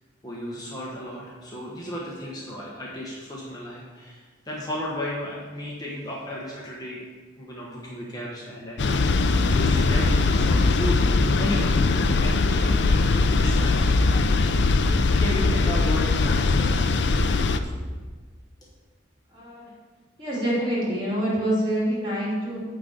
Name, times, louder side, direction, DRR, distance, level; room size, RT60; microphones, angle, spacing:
voice 1, 0.2-7.0 7.4-9.3 9.5-13.9 14.6-17.4, left 1 dB, 20° left, -4 dB, 1.1 m, -34 dB
sound 1, 8.8-17.6, left 3 dB, 65° left, 0.5 m, -21 dB
voice 2, 19.3-19.7 20.2-22.6, right 1 dB, 25° right, -7 dB, 2.8 m, -26 dB
9.3 x 3.8 x 6.7 m, 1.4 s
head